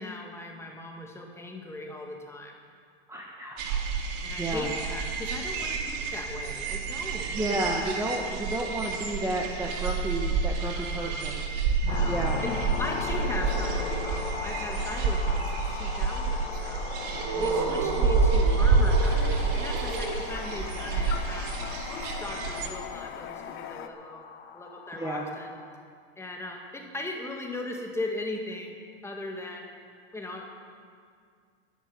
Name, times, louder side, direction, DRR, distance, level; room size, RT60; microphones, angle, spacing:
voice 1, 0.0-2.5 4.2-7.5 10.8-11.3 11.8-17.0 17.4-21.5 21.9-24.2 24.5-25.5 26.2-28.8 29.0-29.7 30.1-30.6, left 2 dB, 10° left, 1 dB, 2.0 m, -38 dB
voice 2, 3.1-3.9 4.4-4.7 7.3-11.4 12.1-12.4 17.1-17.9 24.9-25.2, right 1 dB, 10° right, -1 dB, 1.4 m, -32 dB
sound 1, 3.6-22.7, right 4 dB, 55° right, 2.4 m, -28 dB
sound 2, 11.9-25.7, left 7 dB, 90° left, 1.2 m, -38 dB
Toilet flush, 18.9-23.9, left 10 dB, 40° left, 0.9 m, -40 dB
11.5 x 10.5 x 8.7 m, 2.1 s
hypercardioid pair, 120°, 32 cm